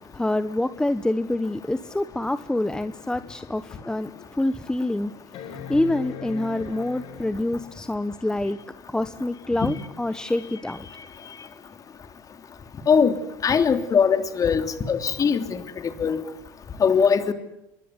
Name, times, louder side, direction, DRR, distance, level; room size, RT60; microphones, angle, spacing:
voice 1, 0.1-5.1 5.7-8.6 8.9-10.9, left 1 dB, 5° left, 1.2 m, -26 dB
sound 1, 5.3-7.8 9.5-9.6, left 6 dB, 55° left, 4.7 m, -39 dB
voice 2, 13.4-16.2 16.8-17.3, left 6 dB, 30° left, 3.2 m, -21 dB
26.5 x 22.0 x 9.8 m
supercardioid pair, 100°, 11 cm